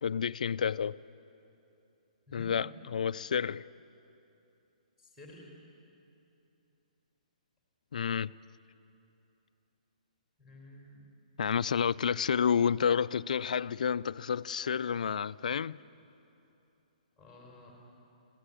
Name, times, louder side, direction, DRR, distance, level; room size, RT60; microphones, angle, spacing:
voice 1, 0.0-1.0 2.3-3.7 7.9-8.4 11.4-15.8, left 7 dB, 70° left, 0.4 m, -30 dB
voice 2, 5.0-5.5 10.4-11.1 17.2-17.8, left 1 dB, 5° right, 3.5 m, -52 dB
20.5 x 16.0 x 9.9 m
hypercardioid pair, 165°, 4 cm